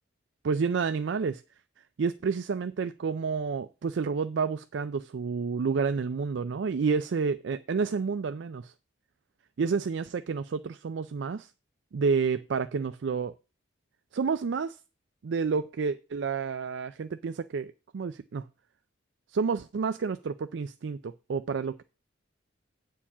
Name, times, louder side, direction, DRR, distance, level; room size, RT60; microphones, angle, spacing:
voice 1, 0.4-1.4 2.0-8.7 9.6-11.5 11.9-13.3 14.1-14.8 15.2-18.5 19.3-21.8, right 5 dB, 70° right, 0.4 m, -29 dB
8.7 x 4.7 x 7.1 m
head